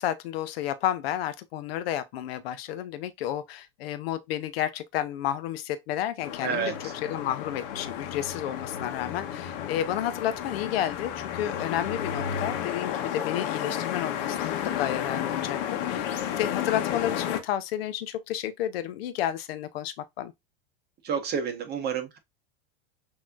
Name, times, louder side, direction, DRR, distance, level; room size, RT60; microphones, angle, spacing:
voice 1, 0.0-6.7 7.1-16.1 16.4-20.3, left 11 dB, 85° left, 0.7 m, -31 dB
sound 1, 6.2-17.4, left 9 dB, 65° left, 1.1 m, -32 dB
voice 2, 6.4-6.9 21.0-22.2, right 6 dB, 35° right, 1.3 m, -30 dB
6.3 x 2.9 x 2.5 m
supercardioid pair, 125°, 29 cm